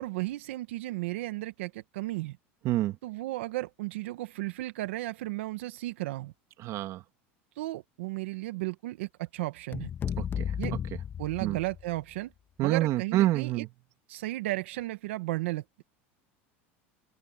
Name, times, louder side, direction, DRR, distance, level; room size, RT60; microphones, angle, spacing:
voice 1, 0.0-2.4 3.0-6.3 7.5-9.9 10.6-10.7 11.2-12.3 12.6-13.6 14.1-15.8, right 18 dB, 80° right, 1.1 m, -34 dB
voice 2, 2.6-3.0 6.6-7.0 10.2-10.5 11.4-11.6 12.6-13.7, right 15 dB, 50° right, 2.8 m, -27 dB
sound 1, 9.7-12.0, left 8 dB, 30° left, 1.6 m, -34 dB
open air
supercardioid pair, 110°, 7 cm